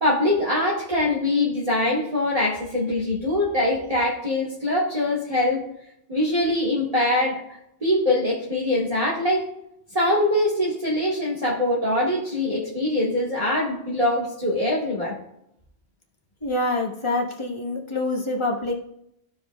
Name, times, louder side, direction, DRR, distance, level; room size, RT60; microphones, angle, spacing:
voice 1, 0.0-5.7 6.1-7.4 7.8-9.5 9.9-15.2, left 1 dB, 30° right, -7 dB, 1.8 m, -23 dB
voice 2, 16.4-18.7, left 2 dB, 25° left, -1 dB, 1.3 m, -26 dB
15.0 x 5.0 x 2.3 m, 0.76 s
omnidirectional pair, 1.2 m